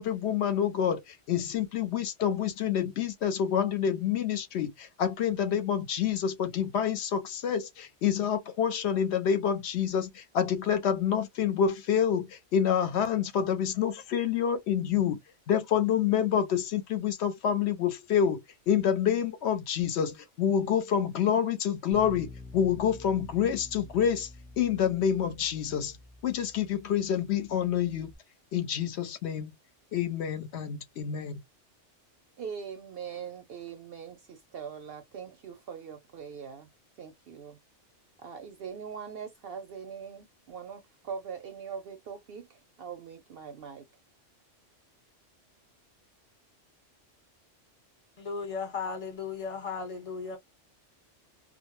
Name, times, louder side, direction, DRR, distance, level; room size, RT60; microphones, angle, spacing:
voice 1, 0.0-15.2 15.5-26.0 26.2-28.1 28.5-29.5 29.9-31.4, left 8 dB, 70° left, 0.8 m, -28 dB
Bass guitar, 21.9-28.2, left 2 dB, ahead, 0.5 m, -49 dB
voice 2, 32.4-36.7 37.0-37.6 38.2-43.9, right 7 dB, 60° right, 0.7 m, -42 dB
voice 3, 48.2-50.4, left 5 dB, 30° left, 0.9 m, -35 dB
2.2 x 2.0 x 3.0 m
omnidirectional pair, 1.3 m